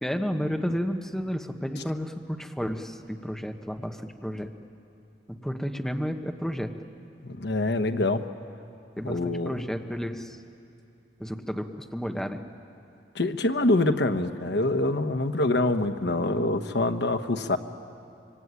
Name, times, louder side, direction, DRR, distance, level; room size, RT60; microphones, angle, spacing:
voice 1, 0.0-4.5 5.3-6.7 9.0-10.4 11.2-12.4, equal, 5° left, 5 dB, 1.3 m, -31 dB
voice 2, 7.2-8.2 9.0-9.5 13.1-17.6, left 2 dB, 70° left, 9 dB, 1.2 m, -25 dB
25.5 x 24.0 x 9.7 m, 2.6 s
head